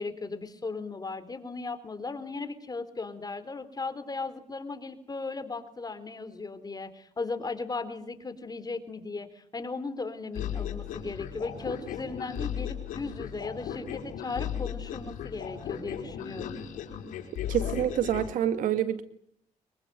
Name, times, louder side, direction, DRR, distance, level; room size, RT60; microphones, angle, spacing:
voice 1, 0.0-16.6, left 3 dB, 30° left, 10 dB, 3.9 m, -37 dB
sound 1, 10.3-18.3, left 9 dB, 85° left, 4.6 m, -36 dB
voice 2, 17.5-19.0, right 10 dB, 80° right, 11 dB, 2.1 m, -27 dB
24.5 x 23.0 x 9.3 m, 0.68 s
cardioid pair, 80°, 13 cm